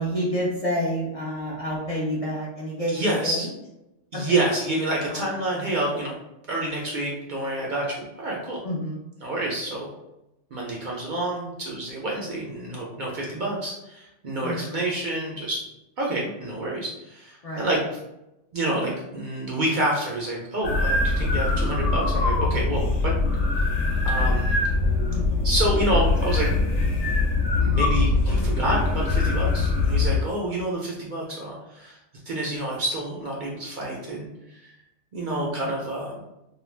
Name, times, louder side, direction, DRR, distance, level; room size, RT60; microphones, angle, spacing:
voice 1, 0.0-3.5 4.1-4.4 5.1-5.3 8.6-9.0 14.4-14.8 17.4-17.6 25.1-25.5 35.2-35.8, equal, 45° left, -6 dB, 0.5 m, -29 dB
voice 2, 2.9-3.5 4.1-6.1 6.5-8.6 9.2-9.9 10.5-15.7 16.0-17.8 18.5-23.1 24.0-24.5 25.4-26.5 27.6-32.0 32.3-34.7 35.1-36.2, right 1 dB, 55° right, -3 dB, 0.6 m, -28 dB
sound 1, 20.6-30.2, left 3 dB, 70° left, 0.9 m, -22 dB
2.3 x 2.2 x 3.2 m, 0.89 s
omnidirectional pair, 1.2 m